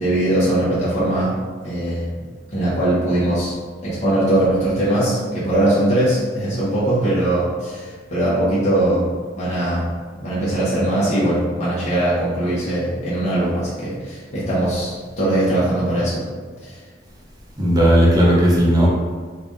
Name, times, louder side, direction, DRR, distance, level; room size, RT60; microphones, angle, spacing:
voice 1, 0.0-1.4 1.6-2.3 2.5-3.5 3.8-9.9 10.2-16.2 16.6-16.8, right 1 dB, 35° left, -9 dB, 0.9 m, -20 dB
voice 2, 17.6-18.9, equal, 20° right, -5 dB, 0.7 m, -15 dB
3.3 x 2.5 x 3.5 m, 1.5 s
head